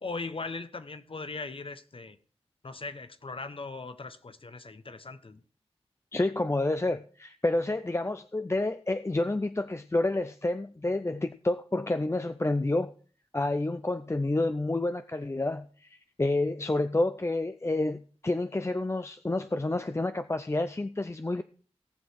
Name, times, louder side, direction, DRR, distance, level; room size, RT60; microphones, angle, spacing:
voice 1, 0.0-2.2 2.6-5.4, left 3 dB, 55° left, 1.0 m, -39 dB
voice 2, 6.1-12.9 13.3-21.4, left 2 dB, 25° left, 0.5 m, -29 dB
17.5 x 6.4 x 4.7 m
wide cardioid pair, 50°, 11 cm